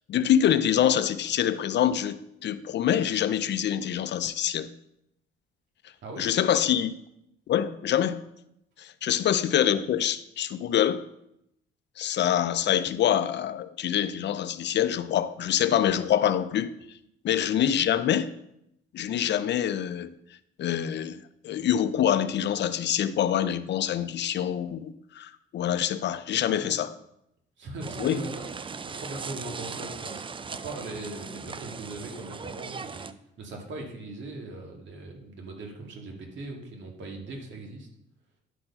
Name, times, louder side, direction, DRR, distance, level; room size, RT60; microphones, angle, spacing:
voice 1, 0.1-4.7 6.2-6.9 7.5-8.2 8.8-11.0 12.0-16.7 17.2-18.3 18.9-20.1 20.6-26.9 28.0-28.2, left 10 dB, 60° left, 0.6 m, -25 dB
voice 2, 26.5-26.8 27.6-33.1 33.4-37.9, right 2 dB, 70° right, 2.2 m, -40 dB
sound 1, 27.8-33.1, right 5 dB, 25° right, 0.5 m, -38 dB
11.0 x 4.4 x 5.5 m
cardioid pair, 90°, 20 cm